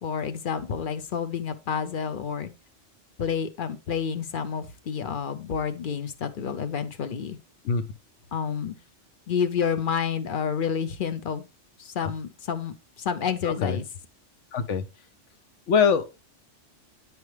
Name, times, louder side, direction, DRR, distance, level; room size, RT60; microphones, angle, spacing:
voice 1, 0.0-2.5 3.2-7.4 8.3-8.8 9.3-11.4 11.8-13.8, left 7 dB, 50° left, 0.8 m, -29 dB
voice 2, 13.4-13.8 14.5-14.8 15.7-16.1, left 6 dB, 80° left, 1.1 m, -23 dB
9.5 x 4.7 x 3.2 m
omnidirectional pair, 1.2 m